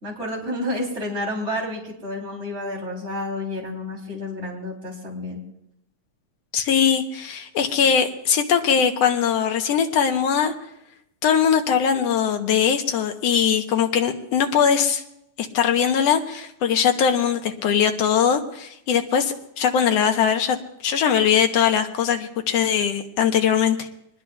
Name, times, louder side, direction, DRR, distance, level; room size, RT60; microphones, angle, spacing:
voice 1, 0.0-5.4, left 1 dB, 25° right, -2 dB, 3.6 m, -30 dB
voice 2, 6.5-10.5 11.2-15.0 15.4-20.6 20.8-23.9, left 8 dB, 65° left, 5 dB, 1.9 m, -21 dB
25.5 x 20.5 x 2.3 m, 0.80 s
omnidirectional pair, 3.3 m